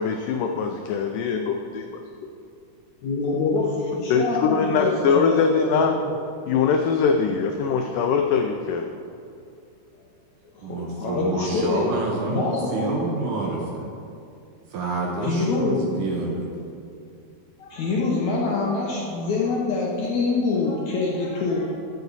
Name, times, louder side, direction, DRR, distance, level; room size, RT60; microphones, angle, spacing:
voice 1, 0.0-2.0 4.1-5.9 6.5-8.9, left 5 dB, 85° left, 4 dB, 1.9 m, -22 dB
voice 2, 3.0-6.0 10.5-11.9 12.3-13.0 15.2-15.9 17.6-21.7, left 3 dB, 70° left, -3 dB, 1.8 m, -25 dB
voice 3, 10.6-13.9 14.7-16.5, right 3 dB, 70° right, -1 dB, 2.1 m, -28 dB
14.0 x 8.3 x 4.0 m, 2.5 s
omnidirectional pair, 4.5 m